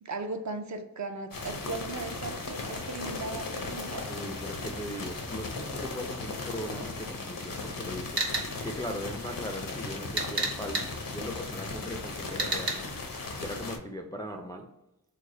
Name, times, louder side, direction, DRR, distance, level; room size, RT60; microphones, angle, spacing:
voice 1, 0.0-4.1, right 3 dB, 50° right, 6 dB, 0.5 m, -37 dB
sound 1, 1.3-13.8, left 3 dB, 65° left, 0.6 m, -37 dB
voice 2, 4.1-8.3 8.6-12.8 13.4-14.7, left 1 dB, 10° left, 3 dB, 0.3 m, -39 dB
sound 2, 8.2-8.5 10.2-10.9 12.4-12.7, right 2 dB, 70° right, 0.8 m, -29 dB
3.2 x 2.0 x 3.7 m, 0.91 s
wide cardioid pair, 40°, 37 cm